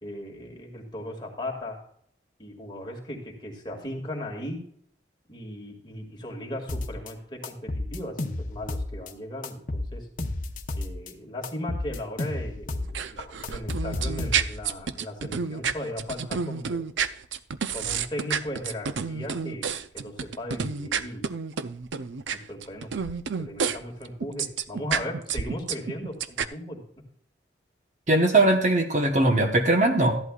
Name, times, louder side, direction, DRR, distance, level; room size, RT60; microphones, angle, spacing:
voice 1, 0.0-1.8 2.4-4.6 5.3-10.1 10.7-16.8 17.7-21.3 22.3-22.9 23.4-26.8, left 1 dB, 25° left, -1 dB, 2.1 m, -37 dB
sound 1, 6.7-7.1 7.4-9.1 9.4-11.1 11.4-12.9 13.2-14.7, left 2 dB, 45° left, 0.9 m, -32 dB
sound 2, 12.8-23.8 24.0-26.5, right 6 dB, 85° right, 0.5 m, -30 dB
voice 2, 28.1-30.2, right 2 dB, 40° right, 4 dB, 1.1 m, -20 dB
14.0 x 11.0 x 2.4 m, 0.63 s
head